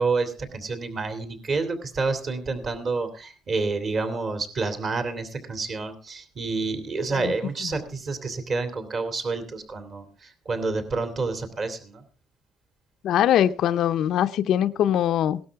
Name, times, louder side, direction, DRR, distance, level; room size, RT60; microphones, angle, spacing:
voice 1, 0.0-12.0, right 3 dB, 35° right, 2.8 m, -29 dB
voice 2, 13.0-15.4, left 10 dB, 60° left, 0.6 m, -22 dB
18.0 x 12.5 x 3.5 m
cardioid pair, 145°, 0 cm